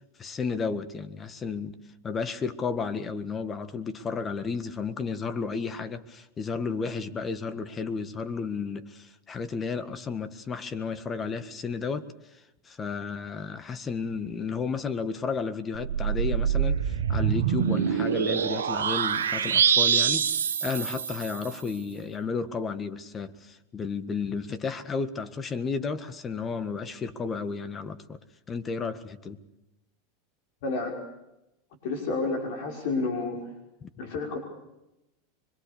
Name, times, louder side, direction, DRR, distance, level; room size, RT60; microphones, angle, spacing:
voice 1, 0.2-12.1 12.6-28.2 28.5-29.4 33.8-33.9, left 5 dB, 25° left, 1.7 m, -33 dB
sound 1, 15.7-21.6, right 8 dB, 90° right, 1.7 m, -25 dB
voice 2, 31.8-33.4 34.0-34.4, left 3 dB, 65° left, 5.8 m, -30 dB
25.0 x 23.0 x 6.9 m
hypercardioid pair, 105°, 0 cm